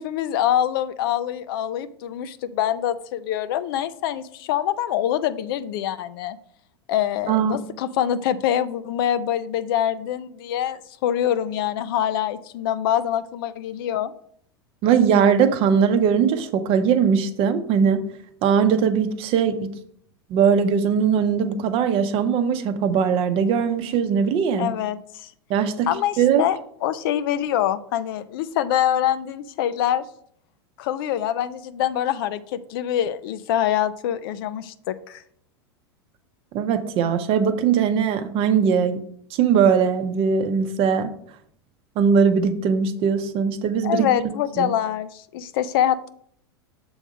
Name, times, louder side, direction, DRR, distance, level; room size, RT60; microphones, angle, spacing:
voice 1, 0.0-6.4 6.9-14.1 24.6-25.3 25.9-30.1 30.8-35.2 43.8-46.1, left 11 dB, 60° left, 14 dB, 0.5 m, -25 dB
voice 2, 7.3-7.6 14.8-18.0 18.4-19.7 20.3-24.7 25.5-25.9 26.2-26.5 36.5-39.0 39.3-41.1 42.0-44.1 44.6-44.7, right 7 dB, 45° right, 9 dB, 0.8 m, -20 dB
7.0 x 3.6 x 5.1 m, 0.64 s
hypercardioid pair, 100°, 13 cm